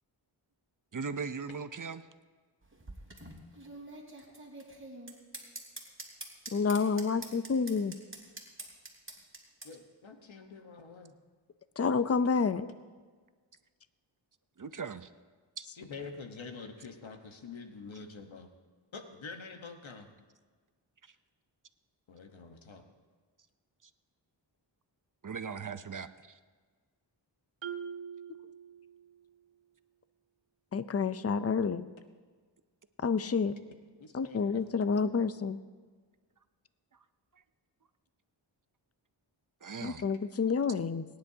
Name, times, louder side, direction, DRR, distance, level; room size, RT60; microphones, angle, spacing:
voice 1, 0.9-2.1 14.6-15.1 15.6-15.7 21.0-21.1 23.8-23.9 25.2-26.4 37.3-37.4 39.6-40.0, right 5 dB, 40° right, 11 dB, 0.7 m, -39 dB
sound 1, 2.6-9.7, right 2 dB, 25° right, 3.2 m, -46 dB
voice 2, 6.5-8.0 11.8-12.7 30.7-31.9 33.0-33.6 34.1-35.6 39.8-41.0, left 5 dB, 30° left, 13 dB, 0.7 m, -29 dB
voice 3, 9.6-11.2 15.8-18.5 18.9-20.1 22.1-22.8 34.0-34.6, left 4 dB, 75° left, 5 dB, 1.4 m, -46 dB
Marimba xylophone, 27.6-29.4, right 7 dB, 70° right, 1.1 m, -43 dB
22.5 x 10.5 x 2.9 m, 1.5 s
cardioid pair, 40°, 47 cm